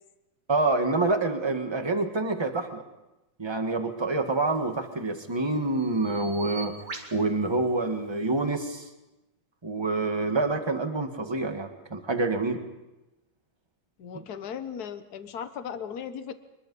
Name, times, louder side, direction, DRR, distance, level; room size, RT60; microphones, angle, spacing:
voice 1, 0.5-2.8 3.4-6.7 7.1-8.9 9.6-12.6, right 3 dB, 15° right, 6 dB, 1.3 m, -27 dB
Bird vocalization bird call bird song, 4.4-8.6, right 3 dB, 50° right, 2.6 m, -46 dB
voice 2, 14.0-16.3, left 8 dB, 50° left, 10 dB, 1.5 m, -37 dB
24.0 x 22.0 x 5.4 m, 0.98 s
omnidirectional pair, 2.4 m